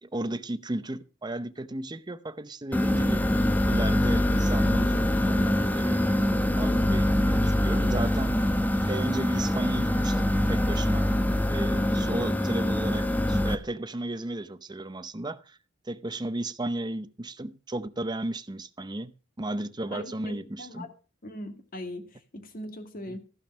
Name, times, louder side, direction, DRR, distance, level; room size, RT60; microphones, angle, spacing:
voice 1, 0.0-6.0 6.5-8.5 8.9-11.1 11.5-15.6 15.9-19.1 19.4-20.9 23.1-23.2, right 1 dB, 20° right, 0.7 m, -34 dB
sound 1, 2.7-13.5, left 1 dB, 10° left, 0.8 m, -24 dB
voice 2, 19.9-20.9 21.2-23.2, left 1 dB, 50° left, 2.3 m, -40 dB
15.0 x 5.3 x 7.4 m
head